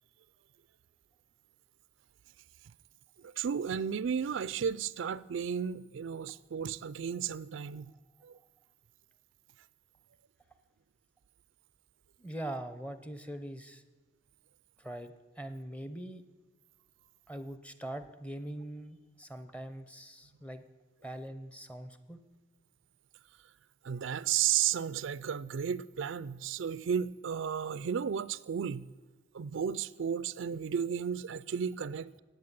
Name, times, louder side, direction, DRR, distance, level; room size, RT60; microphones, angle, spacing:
voice 1, 3.2-7.9 8.2-8.4 23.8-28.9 29.3-32.1, right 8 dB, 70° right, 0.4 m, -33 dB
voice 2, 12.2-13.8 14.8-16.2 17.3-20.6 21.0-22.2, right 1 dB, 5° left, 0.7 m, -42 dB
16.5 x 9.2 x 7.4 m
head